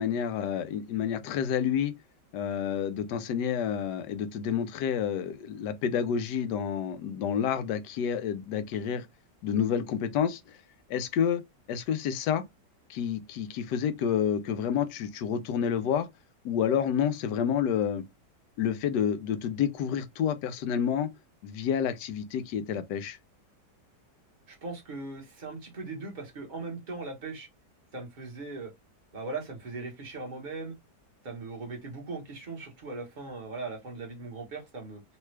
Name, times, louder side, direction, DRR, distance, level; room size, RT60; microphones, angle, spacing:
voice 1, 0.0-1.9 2.3-9.1 9.4-10.4 10.9-11.4 11.7-12.4 12.9-16.1 16.4-18.0 18.6-21.1 21.4-23.2, left 8 dB, 80° left, 1.2 m, -29 dB
voice 2, 24.5-27.5 27.9-28.7 29.1-30.7 31.2-35.0, right 3 dB, 35° right, 1.0 m, -39 dB
3.2 x 2.3 x 3.1 m
omnidirectional pair, 1.8 m